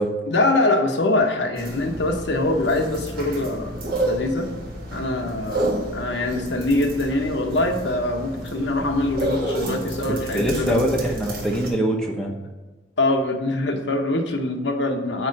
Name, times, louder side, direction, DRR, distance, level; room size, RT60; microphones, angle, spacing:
voice 1, 0.3-3.7 4.0-4.5 4.9-10.9 13.0-15.3, left 2 dB, 70° left, 4 dB, 0.9 m, -23 dB
sound 1, 1.6-11.7, right 1 dB, 50° right, 1.8 m, -30 dB
voice 2, 10.3-12.3, right 1 dB, 5° left, -1 dB, 0.9 m, -23 dB
9.1 x 3.1 x 6.5 m, 1.2 s
head